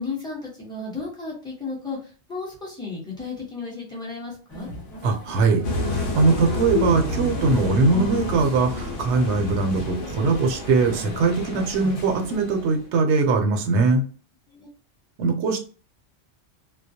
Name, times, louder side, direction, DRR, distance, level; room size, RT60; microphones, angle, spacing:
voice 1, 0.0-4.7 14.5-14.7, left 4 dB, 5° left, -5 dB, 0.7 m, -34 dB
sound 1, 4.5-12.4, right 1 dB, 60° left, 1.0 m, -39 dB
voice 2, 5.0-14.1 15.2-15.6, right 4 dB, 70° right, 3 dB, 0.9 m, -21 dB
sound 2, 5.6-12.9, left 2 dB, 85° left, 0.9 m, -30 dB
2.3 x 2.0 x 2.6 m, 0.38 s
omnidirectional pair, 1.3 m